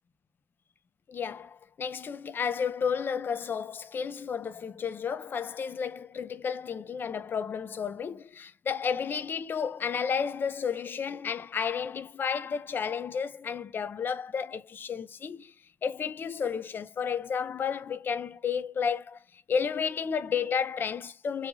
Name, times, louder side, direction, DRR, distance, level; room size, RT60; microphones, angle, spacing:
voice 1, 1.1-15.5 15.8-19.2 19.5-21.5, left 6 dB, 50° left, 0.5 m, -32 dB
2.4 x 2.4 x 3.0 m
cardioid pair, 75°, 4 cm